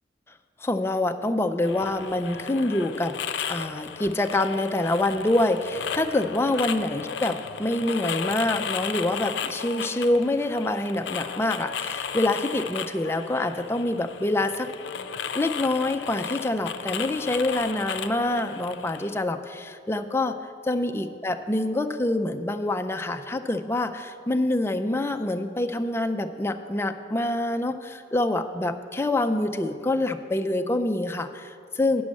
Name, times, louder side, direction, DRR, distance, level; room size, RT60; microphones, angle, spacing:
voice 1, 0.6-3.2 3.5-14.7 15.3-20.4 20.6-32.0, left 2 dB, 15° left, 7 dB, 0.4 m, -26 dB
sound 1, 1.6-19.2, left 7 dB, 80° left, 0.5 m, -34 dB
9.6 x 6.2 x 7.5 m, 2.3 s
head